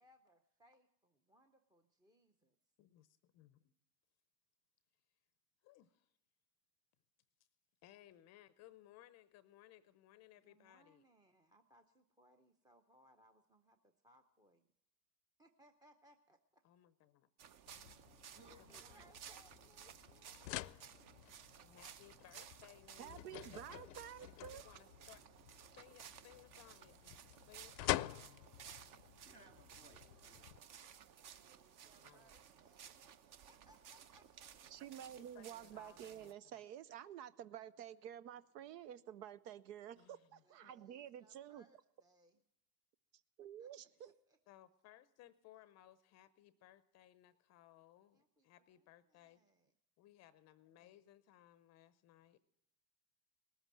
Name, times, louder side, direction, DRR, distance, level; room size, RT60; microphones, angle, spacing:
voice 1, 0.0-2.6 10.4-14.7 15.4-16.6 18.4-20.8 31.2-33.0 33.5-34.7 40.4-42.4 43.6-43.7 44.0-44.4 48.1-48.8 49.1-49.7, equal, 10° right, 0.6 m, -70 dB
voice 2, 2.8-3.7 5.6-6.1 7.8-11.0 16.6-17.3 18.7-18.9 21.6-24.1 24.5-25.2 25.5-27.1 27.4-28.1 32.0-32.4 35.1-36.6 40.0-40.7 42.3-42.4 44.5-49.4 50.0-52.4, left 13 dB, 35° left, 0.6 m, -63 dB
sound 1, 17.4-36.3, right 8 dB, 40° right, 0.9 m, -58 dB
sound 2, 17.7-30.6, left 17 dB, 80° left, 0.6 m, -47 dB
voice 3, 18.2-19.1 29.2-31.0, right 2 dB, 25° right, 2.6 m, -65 dB
voice 4, 23.0-24.8 34.7-41.6 43.4-44.1, right 10 dB, 70° right, 0.7 m, -51 dB
19.0 x 8.1 x 7.4 m
hypercardioid pair, 110°, 50 cm